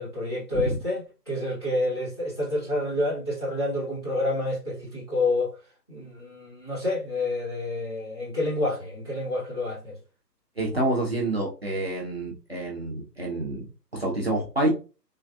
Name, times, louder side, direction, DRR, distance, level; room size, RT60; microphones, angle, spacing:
voice 1, 0.0-5.5 5.9-10.0, left 2 dB, 15° left, 0.7 m, -28 dB
voice 2, 10.6-13.7 13.9-14.7, right 1 dB, 40° right, 0.5 m, -27 dB
3.4 x 2.3 x 2.2 m
figure-of-eight pair, 145°, 49 cm